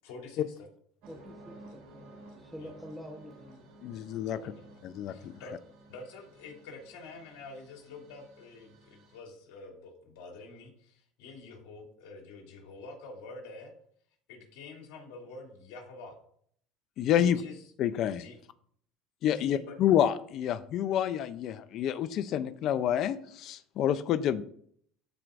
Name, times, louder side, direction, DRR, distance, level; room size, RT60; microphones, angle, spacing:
voice 1, 0.0-0.7 2.6-2.7 4.3-4.8 5.1-5.5 5.9-13.7 14.3-16.2 17.1-17.6 18.1-18.4 19.3-19.7, left 3 dB, 80° left, 0 dB, 2.6 m, -47 dB
sound 1, 1.0-9.2, right 2 dB, 75° right, 3.3 m, -54 dB
voice 2, 1.1-3.6, equal, ahead, 0 dB, 1.1 m, -47 dB
voice 3, 3.8-4.4 4.8-5.3 17.0-17.4 17.8-18.2 19.2-24.4, left 10 dB, 55° left, 14 dB, 0.5 m, -28 dB
13.5 x 4.6 x 2.6 m, 0.62 s
supercardioid pair, 105°, 0 cm